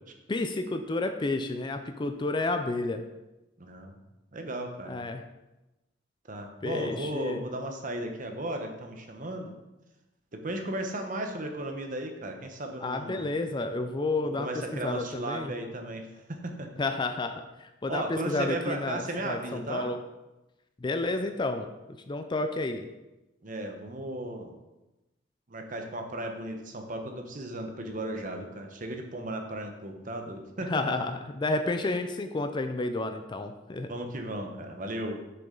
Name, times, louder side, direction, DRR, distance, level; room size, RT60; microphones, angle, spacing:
voice 1, 0.3-3.0 4.9-5.2 6.6-7.4 12.8-15.5 16.8-20.0 20.8-21.7 22.1-22.9 30.7-33.9, left 2 dB, 25° left, 8 dB, 0.4 m, -31 dB
voice 2, 3.6-3.9 4.3-5.0 6.3-9.6 10.3-13.3 14.4-16.7 17.9-19.9 23.4-24.6 25.5-31.0 33.9-35.2, right 1 dB, 45° right, 4 dB, 0.9 m, -35 dB
6.9 x 6.8 x 3.8 m, 1.0 s
head